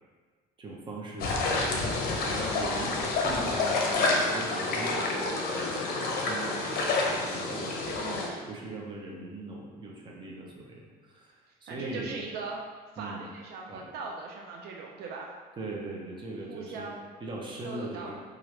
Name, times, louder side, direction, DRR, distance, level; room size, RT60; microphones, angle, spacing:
voice 1, 0.6-7.8 8.5-11.3 11.6-12.2 13.0-13.2 13.7-13.9 15.6-16.9 17.2-18.1, right 2 dB, 30° right, -2 dB, 0.6 m, -40 dB
sound 1, 1.2-8.3, left 3 dB, 60° left, 0.6 m, -28 dB
voice 2, 7.9-8.6 11.7-12.6 12.9-15.3 16.5-17.1 17.6-18.1, right 4 dB, 70° right, 0 dB, 0.4 m, -40 dB
3.0 x 2.4 x 3.1 m, 1.5 s
cardioid pair, 110°, 17 cm